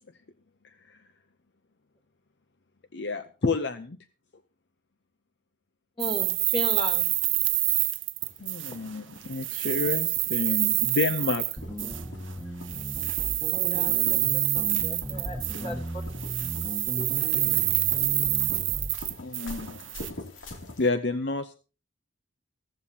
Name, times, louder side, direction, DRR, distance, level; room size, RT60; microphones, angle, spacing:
voice 1, 2.9-4.0 8.4-11.4 19.2-19.8 20.8-21.5, left 3 dB, 60° left, 10 dB, 0.6 m, -29 dB
voice 2, 6.0-7.0 13.7-15.4 15.6-16.0 16.9-17.4, left 2 dB, 25° left, 1 dB, 2.9 m, -36 dB
sound 1, 6.0-9.0 9.2-12.0 12.6-15.9 16.2-20.1, right 19 dB, 75° right, 0.7 m, -27 dB
sound 2, 8.2-20.9, left 1 dB, 80° left, 2.8 m, -45 dB
sound 3, 11.6-19.0, equal, 10° left, 1.8 m, -36 dB
15.5 x 14.5 x 2.8 m, 0.35 s
head